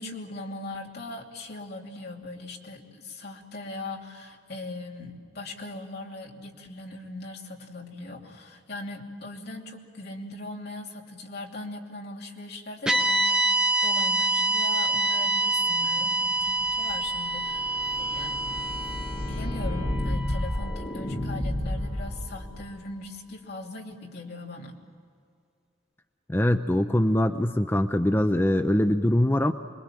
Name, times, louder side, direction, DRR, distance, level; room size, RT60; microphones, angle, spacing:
voice 1, 0.0-13.4 13.8-18.6 19.1-24.7, left 2 dB, 60° left, 0 dB, 2.9 m, -40 dB
sound 1, 12.9-21.2, right 2 dB, 5° right, 1.0 m, -27 dB
sound 2, 16.3-22.6, left 1 dB, 35° left, 2.8 m, -32 dB
voice 2, 26.3-29.5, left 1 dB, 15° left, 7 dB, 0.6 m, -23 dB
26.0 x 22.5 x 7.5 m, 2.2 s
head